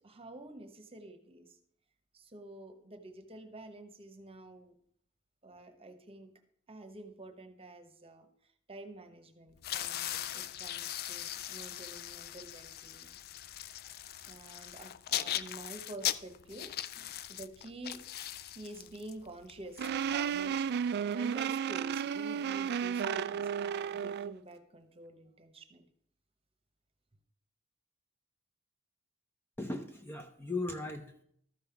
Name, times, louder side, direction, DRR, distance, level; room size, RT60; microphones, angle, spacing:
voice 1, 0.0-1.6 2.1-4.7 5.4-6.3 6.7-8.3 8.7-13.1 14.3-18.0 18.5-25.9, right 2 dB, 25° right, 7 dB, 1.1 m, -49 dB
sound 1, 9.6-20.6, left 12 dB, 45° left, 0.4 m, -40 dB
sound 2, 19.8-24.3, right 7 dB, 50° right, 0.3 m, -33 dB
voice 2, 29.6-31.2, left 2 dB, 10° left, 5 dB, 0.6 m, -38 dB
13.0 x 5.6 x 5.9 m, 0.67 s
head